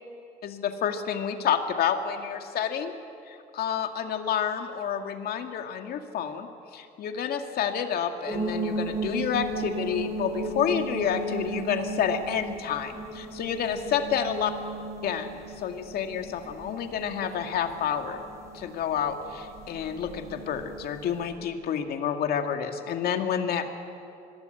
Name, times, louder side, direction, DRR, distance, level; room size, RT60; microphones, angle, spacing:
voice 1, 0.4-2.9 3.3-14.5 15.0-18.2 18.5-23.7, left 8 dB, 65° left, 5 dB, 2.2 m, -29 dB
sound 1, 8.3-21.3, right 2 dB, 15° right, 7.3 m, -36 dB
25.5 x 21.0 x 8.1 m, 2.6 s
cardioid pair, 110°, 17 cm